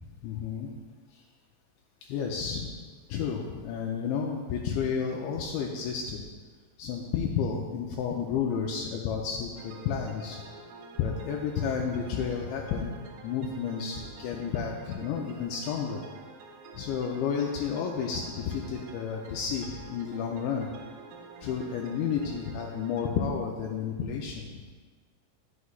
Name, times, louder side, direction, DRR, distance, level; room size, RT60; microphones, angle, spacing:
voice 1, 0.2-0.7 2.1-2.7 3.1-6.2 6.8-10.4 11.0-12.9 13.2-16.0 16.8-20.7 21.4-24.6, left 6 dB, 80° left, -1 dB, 2.8 m, -31 dB
sound 1, 9.6-23.1, right 4 dB, 75° right, 2.4 m, -49 dB
11.0 x 8.2 x 2.4 m, 1.5 s
omnidirectional pair, 5.5 m